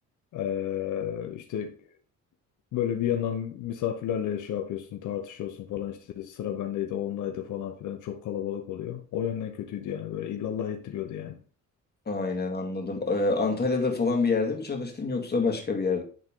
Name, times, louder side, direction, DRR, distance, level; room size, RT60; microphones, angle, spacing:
voice 1, 0.3-1.8 2.7-11.4, left 10 dB, 80° left, 0.8 m, -32 dB
voice 2, 12.1-16.0, left 3 dB, 35° left, 2.0 m, -27 dB
10.0 x 3.7 x 3.7 m
cardioid pair, 90°, 30 cm